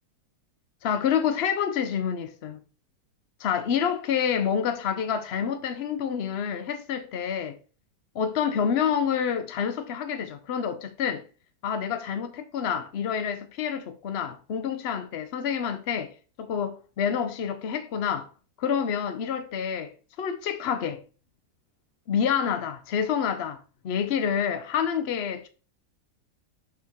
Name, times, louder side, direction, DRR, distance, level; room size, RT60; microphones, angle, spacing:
voice 1, 0.8-2.6 3.4-7.6 8.1-11.2 11.6-16.1 16.4-18.3 18.6-19.9 20.2-21.0 22.1-23.6 23.8-25.5, left 7 dB, 65° left, 0.6 m, -28 dB
11.0 x 4.6 x 3.6 m
omnidirectional pair, 1.8 m